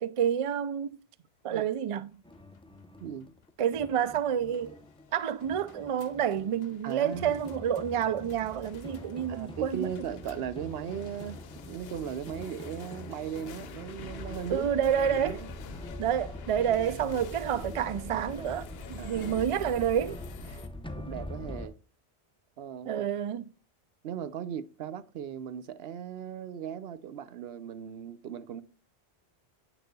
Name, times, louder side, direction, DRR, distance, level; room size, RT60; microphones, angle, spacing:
voice 1, 0.0-1.0 1.4-2.2 3.6-4.7 5.1-9.9 14.5-15.4 16.0-20.2 22.9-23.5, right 9 dB, 55° right, 0.4 m, -29 dB
sound 1, 2.1-20.7, left 8 dB, 75° left, 0.9 m, -49 dB
sound 2, 2.2-21.7, left 1 dB, 5° left, 0.7 m, -44 dB
voice 2, 3.0-3.3 6.8-7.4 9.3-14.7 15.1-15.5 19.0-19.4 20.9-21.8 22.6-23.1 24.0-28.6, right 8 dB, 75° right, 0.9 m, -38 dB
8.0 x 6.5 x 2.3 m
omnidirectional pair, 1.0 m